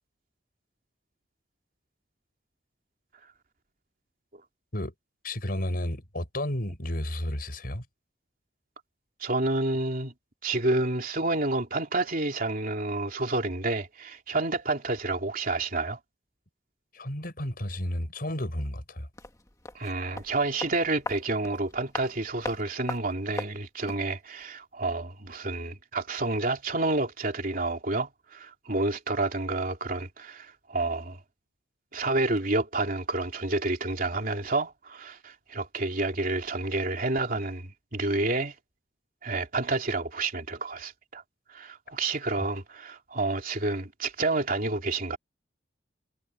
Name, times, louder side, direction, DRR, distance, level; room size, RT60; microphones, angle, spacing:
voice 1, 5.2-7.9 16.9-19.1, left 1 dB, 55° left, 5.4 m, -32 dB
voice 2, 9.2-10.1 10.4-16.0 19.7-31.2 31.9-38.5 39.2-41.2 41.5-45.2, right 2 dB, 50° right, 3.2 m, -29 dB
sound 1, 19.1-24.1 24.4-24.5, left 2 dB, 20° left, 1.8 m, -40 dB
head